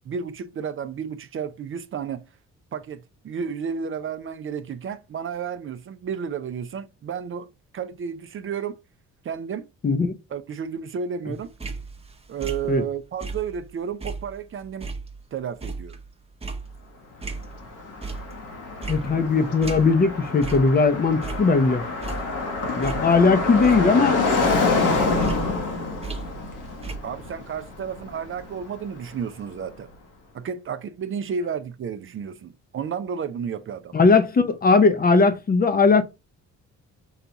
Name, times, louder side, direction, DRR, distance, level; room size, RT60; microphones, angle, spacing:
voice 1, 0.1-2.2 2.7-7.5 7.7-8.8 9.2-9.7 10.3-11.5 12.3-14.9 15.3-16.0 27.0-29.9 30.3-34.0, right 7 dB, 45° right, 0.5 m, -32 dB
voice 2, 9.8-10.1 12.7-12.8 18.9-21.8 22.8-24.2 33.9-36.0, left 4 dB, 30° left, 0.6 m, -19 dB
sound 1, 11.3-13.7 14.0-17.7 18.0-18.5 18.8-20.1 20.4-20.7 21.1-22.4 22.8-24.1 24.4-26.6 26.8-27.0, right 3 dB, 20° right, 0.8 m, -36 dB
Car passing by, 17.2-29.2, left 3 dB, 85° left, 1.2 m, -27 dB
5.6 x 2.3 x 3.9 m
cardioid pair, 90°, 30 cm